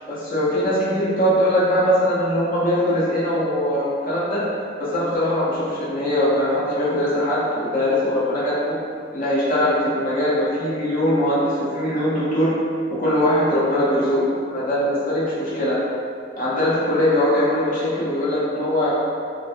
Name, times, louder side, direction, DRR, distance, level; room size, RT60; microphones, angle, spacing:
voice 1, 0.1-4.4 4.8-8.7 9.1-12.5 13.0-15.8 16.4-18.9, equal, 45° left, -10 dB, 0.7 m, -21 dB
2.3 x 2.1 x 2.6 m, 2.3 s
head